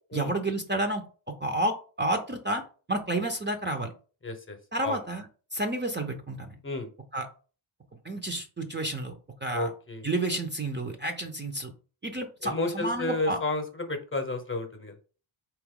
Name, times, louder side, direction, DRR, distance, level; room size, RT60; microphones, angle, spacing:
voice 1, 0.1-1.0 1.4-2.6 2.9-3.9 4.7-5.3 5.5-6.6 7.1-7.3 8.0-9.1 9.4-9.7 10.0-11.7 12.0-13.4, right 1 dB, 20° right, 3 dB, 0.7 m, -30 dB
voice 2, 4.2-4.6 4.8-5.0 6.6-6.9 9.5-10.1 12.4-15.0, left 2 dB, 25° left, 6 dB, 0.9 m, -32 dB
4.2 x 3.0 x 3.7 m, 0.37 s
cardioid pair, 80°, 49 cm